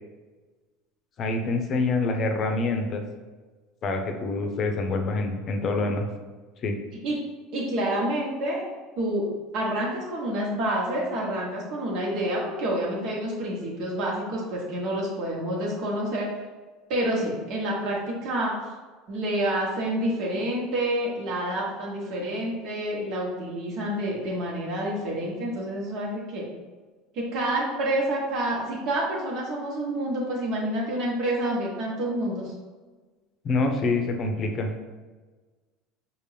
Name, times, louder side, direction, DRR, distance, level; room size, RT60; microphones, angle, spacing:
voice 1, 1.2-3.0 3.8-6.0 6.6-6.7 33.4-34.7, left 3 dB, 40° left, 5 dB, 0.6 m, -26 dB
voice 2, 7.5-8.6 8.9-9.2 9.5-16.3 16.9-18.5 19.1-26.4 27.1-32.5, right 1 dB, 55° right, -4 dB, 1.2 m, -28 dB
5.1 x 2.5 x 3.3 m, 1.3 s
supercardioid pair, 115°, 0 cm